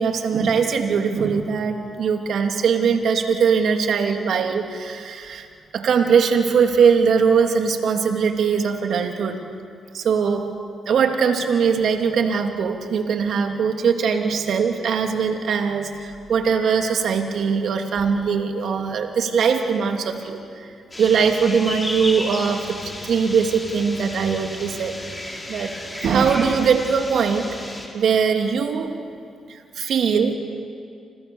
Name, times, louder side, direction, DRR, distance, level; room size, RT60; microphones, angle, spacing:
voice 1, 0.0-5.5 5.7-9.4 9.9-10.5 10.9-20.7 21.0-24.9 25.5-25.7 26.0-27.6 27.9-29.0 29.5-30.3, right 6 dB, 70° right, 4 dB, 2.9 m, -21 dB
sound 1, 20.9-27.9, left 1 dB, 20° left, 6.3 m, -34 dB
30.0 x 27.5 x 7.2 m, 2.3 s
supercardioid pair, 65°, 0 cm